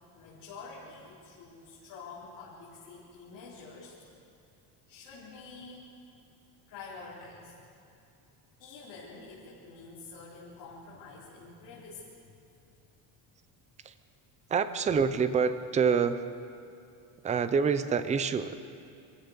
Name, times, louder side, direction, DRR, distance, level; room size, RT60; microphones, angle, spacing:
voice 1, 0.1-4.0 4.9-5.9 6.7-7.6 8.6-12.3, left 4 dB, 50° left, -8 dB, 4.4 m, -47 dB
voice 2, 14.5-16.2 17.2-18.6, right 6 dB, 15° right, 11 dB, 0.5 m, -27 dB
26.0 x 15.0 x 6.8 m, 2.6 s
cardioid pair, 180°, 47 cm